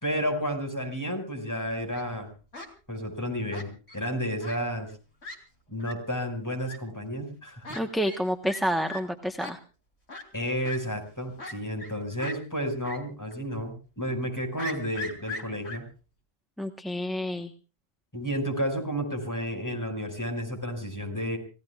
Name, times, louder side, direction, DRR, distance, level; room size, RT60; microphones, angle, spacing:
voice 1, 0.0-2.3 2.9-4.9 5.7-7.7 10.3-15.8 18.1-21.4, equal, 15° left, 4 dB, 5.4 m, -31 dB
Fowl, 1.7-2.1 2.5-2.7 3.5-4.0 4.4-4.6 4.9-5.0 5.2-5.4 5.8-5.9 6.6-6.8 7.6-7.8 8.1-8.2 8.5-8.6 8.9-9.0 9.4-9.5 10.1-10.2 10.6-10.8 11.4-11.9 12.2-12.4 12.8-13.0 13.3-13.4 14.6-15.8, left 2 dB, 85° left, 3.7 m, -38 dB
voice 2, 7.7-9.6 16.6-17.5, equal, ahead, 5 dB, 1.0 m, -29 dB
29.5 x 17.5 x 2.4 m, 0.36 s
omnidirectional pair, 1.1 m